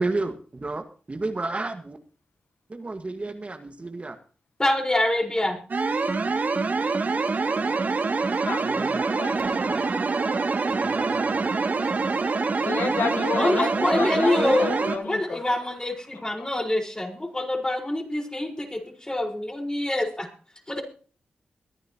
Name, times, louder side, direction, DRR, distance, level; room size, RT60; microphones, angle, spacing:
voice 1, 0.0-2.0 2.7-4.2 8.6-9.1 9.7-9.8 10.7-11.5, right 2 dB, 35° right, 6 dB, 1.7 m, -31 dB
voice 2, 4.6-5.6 13.4-20.3, left 1 dB, 20° left, 2 dB, 4.7 m, -26 dB
sound 1, 5.7-15.0, right 4 dB, 55° right, 2.3 m, -25 dB
voice 3, 9.1-9.6 12.6-15.4 16.1-16.5, left 5 dB, 75° left, 7 dB, 1.3 m, -30 dB
23.0 x 10.0 x 3.0 m, 0.40 s
cardioid pair, 45°, 4 cm